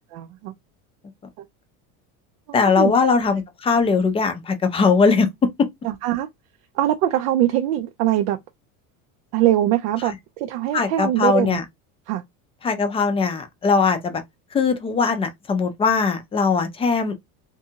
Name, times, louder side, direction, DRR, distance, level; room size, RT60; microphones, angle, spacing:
voice 1, 0.1-0.5 2.8-2.9 5.8-6.3 6.8-8.4 9.3-11.6 12.1-12.2, right 13 dB, 85° right, 0.5 m, -22 dB
voice 2, 2.5-5.3 5.6-5.7 10.0-10.1 10.7-11.6 12.6-14.2 14.5-17.1, left 5 dB, 15° left, 0.4 m, -20 dB
2.6 x 2.2 x 2.8 m
supercardioid pair, 125°, 42 cm